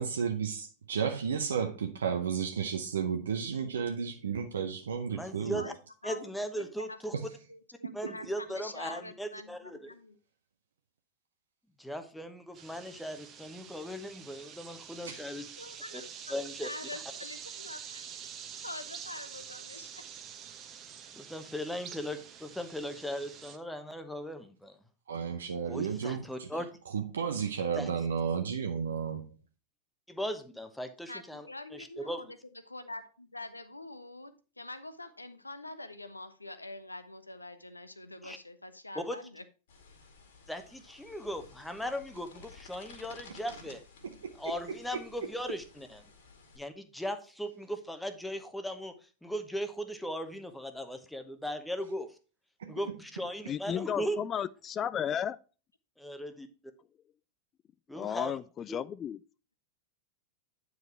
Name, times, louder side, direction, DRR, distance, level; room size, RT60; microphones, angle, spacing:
voice 1, 0.0-5.7 7.1-7.3 7.8-8.3 15.0-15.3 25.1-26.5 26.9-29.3 44.0-44.3 52.6-52.8, right 6 dB, 65° right, 0.7 m, -33 dB
voice 2, 5.1-5.7 6.0-7.1 7.9-9.9 11.8-15.5 15.9-16.0 16.3-17.0 21.1-24.8 25.7-26.8 27.8-27.9 30.1-31.5 31.7-32.2 38.2-38.4 38.9-39.2 40.5-43.8 44.4-46.0 46.6-52.2 52.7-54.2 56.0-56.5 57.9-58.4 58.7-58.8, equal, 5° left, 1.0 m, -38 dB
voice 3, 6.0-10.2 15.6-18.0 18.6-20.1 31.1-39.4, left 2 dB, 85° left, 0.8 m, -45 dB
sound 1, 12.5-23.6, right 8 dB, 30° right, 1.1 m, -47 dB
sound 2, 39.7-46.6, left 4 dB, 60° left, 2.3 m, -54 dB
voice 4, 53.5-55.4 57.9-59.2, left 9 dB, 25° left, 0.3 m, -33 dB
9.4 x 4.8 x 4.5 m
figure-of-eight pair, 90°, 0 cm